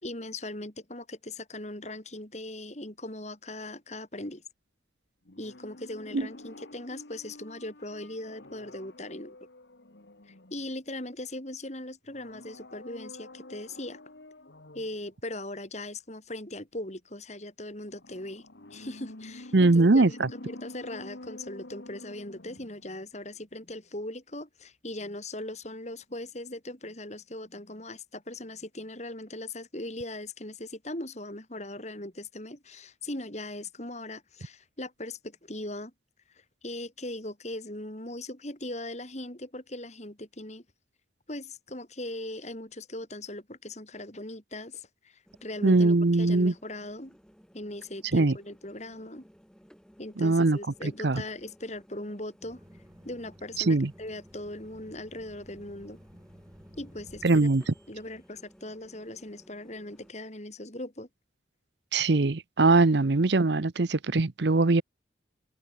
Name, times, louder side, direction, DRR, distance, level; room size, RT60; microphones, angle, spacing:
voice 1, 0.0-4.4 5.4-9.4 10.3-14.0 14.7-18.4 18.7-20.2 20.5-35.9 36.3-40.6 41.3-47.2 47.5-49.2 50.0-52.6 53.0-56.0 56.8-57.5 57.9-61.1, left 1 dB, 35° left, 4.1 m, -39 dB
sound 1, 5.3-11.0 12.1-15.1 17.9-23.1 23.3-23.4, left 1 dB, 65° left, 1.9 m, -48 dB
voice 2, 19.5-20.3 45.6-46.5 48.1-48.4 50.2-50.6 51.0-51.2 53.6-53.9 57.2-57.7 61.9-64.8, right 3 dB, 65° right, 0.8 m, -22 dB
sound 2, 45.2-60.1, equal, 5° left, 5.9 m, -58 dB
sound 3, 52.4-58.8, right 1 dB, 20° right, 6.9 m, -54 dB
head